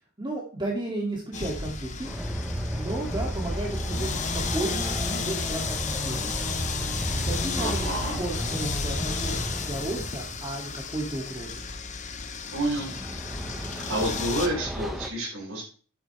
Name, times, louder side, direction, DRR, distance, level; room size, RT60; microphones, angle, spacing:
voice 1, 0.2-2.1 2.7-6.5 7.3-11.6, right 2 dB, 20° right, -2 dB, 2.4 m, -34 dB
sound 1, 1.3-14.5, left 5 dB, 35° left, 1.0 m, -34 dB
sound 2, 1.4-9.4, equal, 45° right, 4.5 m, -37 dB
Train, 2.0-10.5 12.4-15.1, equal, ahead, 1.1 m, -34 dB
voice 2, 7.6-8.2 12.5-12.9 13.6-15.6, right 1 dB, 65° right, -6 dB, 5.0 m, -29 dB
11.0 x 8.7 x 3.3 m, 0.39 s
head